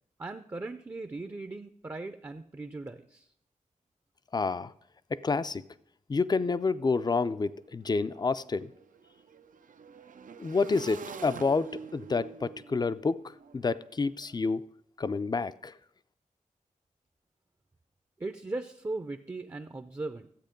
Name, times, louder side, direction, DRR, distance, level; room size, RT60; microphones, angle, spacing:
voice 1, 0.2-3.3 18.2-20.3, right 2 dB, 20° right, 9 dB, 0.5 m, -38 dB
voice 2, 4.3-4.7 5.1-5.6 6.1-8.7 10.4-14.6 15.0-15.7, left 4 dB, 30° left, 14 dB, 0.4 m, -29 dB
Motorcycle / Engine, 6.9-7.0 7.2-14.4, right 5 dB, 75° right, 0.5 m, -47 dB
13.0 x 8.2 x 5.2 m, 0.69 s
wide cardioid pair, 105°, 14 cm